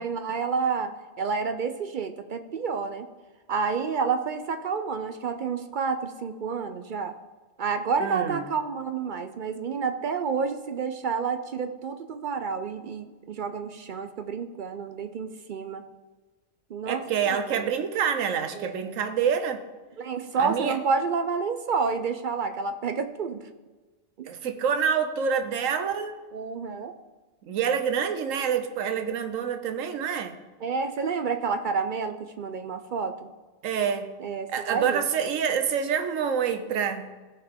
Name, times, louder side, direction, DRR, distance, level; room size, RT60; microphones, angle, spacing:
voice 1, 0.0-3.1 3.5-7.1 7.6-15.8 16.7-17.7 18.6-18.9 20.0-23.4 24.2-24.3 26.3-26.9 30.6-33.3 34.2-35.1, right 5 dB, 55° right, 9 dB, 0.5 m, -29 dB
voice 2, 8.0-8.4 16.9-19.6 20.4-20.8 24.2-26.1 27.4-30.3 33.6-34.1 34.5-37.1, right 7 dB, 90° right, 8 dB, 1.2 m, -27 dB
16.0 x 5.6 x 3.6 m, 1.3 s
omnidirectional pair, 1.3 m